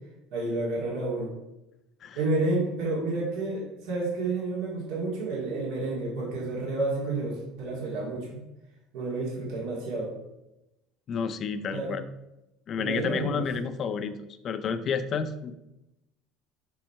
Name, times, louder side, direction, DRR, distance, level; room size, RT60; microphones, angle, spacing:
voice 1, 0.3-1.3 2.2-8.4 8.9-10.1 11.7-11.9 12.8-13.7, right 2 dB, 75° right, -3 dB, 2.2 m, -30 dB
voice 2, 11.1-12.0 12.7-15.5, left 6 dB, 40° left, 11 dB, 0.5 m, -30 dB
5.3 x 4.7 x 4.3 m, 0.93 s
supercardioid pair, 115°, 0 cm